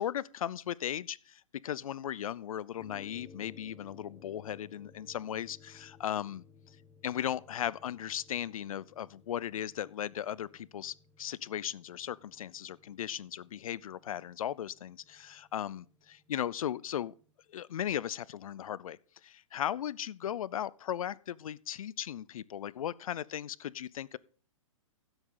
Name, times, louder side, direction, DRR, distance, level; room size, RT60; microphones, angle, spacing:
voice 1, 0.0-6.4 7.0-17.1 17.5-24.2, left 10 dB, 85° left, 0.5 m, -37 dB
sound 1, 2.8-17.3, left 5 dB, ahead, 0.5 m, -59 dB
14.0 x 8.0 x 3.8 m
hypercardioid pair, 165°, 17 cm